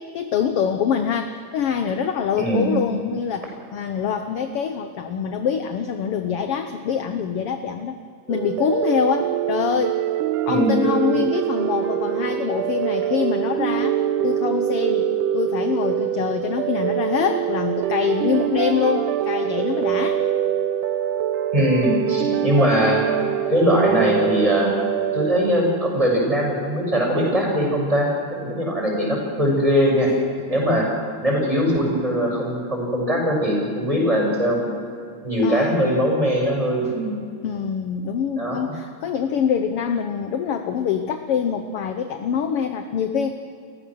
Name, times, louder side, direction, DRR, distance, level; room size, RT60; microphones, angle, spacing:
voice 1, 0.0-7.9 8.3-10.0 10.4-15.0 15.3-20.2 35.4-35.7 36.8-37.0 37.4-43.4, left 7 dB, 65° left, 7 dB, 1.5 m, -25 dB
voice 2, 2.4-2.7 10.5-10.9 21.5-23.0 23.5-24.7 25.1-28.1 28.4-30.1 30.5-30.9 31.2-34.6 35.2-37.2 38.4-38.7, equal, 10° right, -2 dB, 6.6 m, -21 dB
sound 1, 8.3-25.4, right 10 dB, 85° right, 2.3 m, -24 dB
30.0 x 15.0 x 6.3 m, 2.4 s
omnidirectional pair, 3.5 m